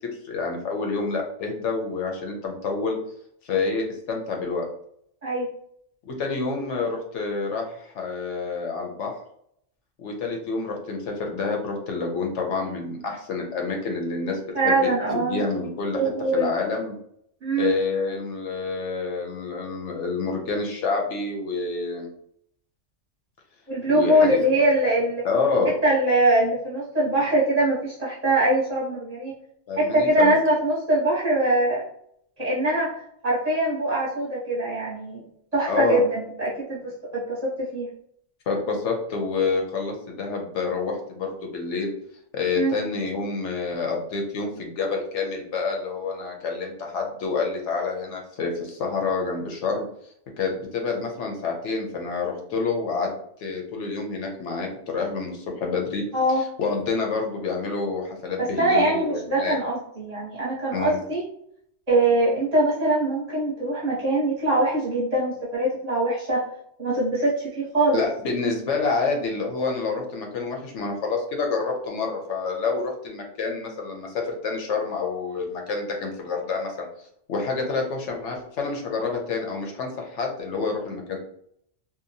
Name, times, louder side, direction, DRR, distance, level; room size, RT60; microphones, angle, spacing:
voice 1, 0.2-3.0 3.4-4.6 6.1-9.1 10.0-16.0 16.3-16.9 17.6-22.1 23.9-24.4 25.2-25.7 29.7-30.3 35.6-36.0 38.5-41.9 42.3-49.8 50.4-53.1 53.4-56.0 56.6-59.6 60.7-61.0 67.9-76.9 77.3-81.2, left 4 dB, 75° left, 1 dB, 0.9 m, -28 dB
voice 2, 14.5-15.5 15.9-16.5 17.4-17.7 23.7-25.2 25.8-29.3 29.8-31.8 32.4-32.9 33.2-35.2 35.5-37.9 42.5-42.7 56.1-56.4 58.4-61.2 61.9-66.4 66.8-68.0, right 1 dB, 35° right, -7 dB, 0.8 m, -22 dB
2.7 x 2.1 x 2.6 m, 0.69 s
omnidirectional pair, 1.3 m